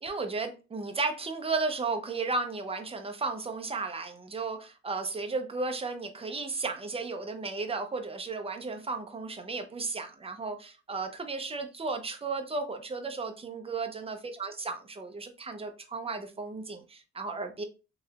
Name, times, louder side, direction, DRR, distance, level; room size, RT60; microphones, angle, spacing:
voice 1, 0.0-17.6, right 3 dB, 20° right, 6 dB, 0.6 m, -34 dB
3.1 x 2.8 x 2.3 m, 0.32 s
cardioid pair, 90°, 30 cm